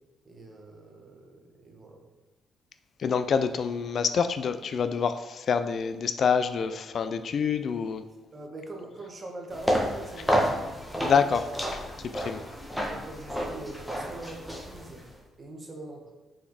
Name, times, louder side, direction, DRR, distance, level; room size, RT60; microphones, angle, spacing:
voice 1, 0.2-2.0 8.3-11.3 11.9-16.1, right 2 dB, 35° right, 1 dB, 1.4 m, -43 dB
voice 2, 3.0-8.0 11.0-11.4 11.7-11.8 12.1-12.4, left 6 dB, 55° left, 10 dB, 0.4 m, -26 dB
sound 1, 9.5-15.1, equal, ahead, 1.4 m, -30 dB
5.7 x 4.3 x 4.8 m, 1.2 s
cardioid pair, 90°, 0 cm